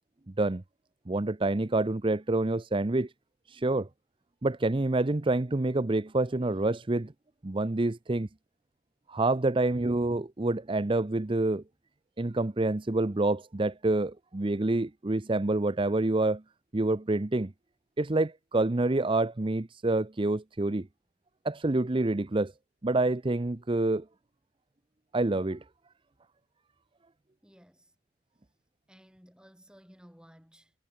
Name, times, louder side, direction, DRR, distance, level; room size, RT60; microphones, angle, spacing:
voice 1, 1.1-3.1 3.5-3.9 4.4-7.1 7.4-8.3 9.1-11.6 12.2-16.4 16.7-17.5 18.0-20.9 21.4-22.5 22.8-24.0 25.1-25.6, right 2 dB, 25° right, 0.7 m, -27 dB
voice 2, 27.4-27.9 28.9-30.7, equal, 5° right, 5.5 m, -56 dB
head